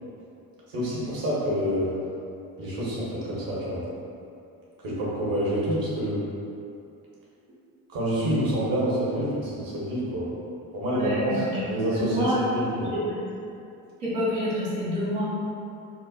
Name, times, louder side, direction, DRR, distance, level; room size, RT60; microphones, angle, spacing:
voice 1, 0.7-1.9 2.6-3.8 4.8-6.2 7.9-10.3 10.7-12.9, equal, 55° right, -8 dB, 1.1 m, -27 dB
voice 2, 10.9-11.5 11.9-12.4 12.8-13.2 14.0-15.2, equal, 80° right, -12 dB, 1.1 m, -28 dB
4.2 x 2.1 x 2.4 m, 2.6 s
hypercardioid pair, 45°, 43 cm